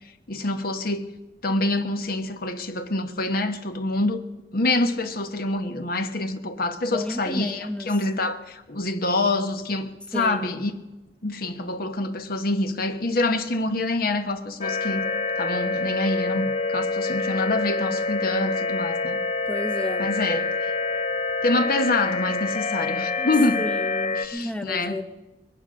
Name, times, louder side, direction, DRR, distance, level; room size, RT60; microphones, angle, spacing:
voice 1, 0.3-1.1 1.4-4.2 4.5-10.7 11.2-15.0 15.4-19.2 20.0-20.7 21.4-23.6 24.2-25.0, left 2 dB, 55° left, 1.0 m, -26 dB
voice 2, 6.9-7.9 10.1-10.5 19.5-20.1 23.2-23.3 23.6-25.0, left 1 dB, 5° left, 0.7 m, -32 dB
sound 1, 14.6-24.3, left 3 dB, 40° left, 0.9 m, -26 dB
21.5 x 9.9 x 6.3 m
head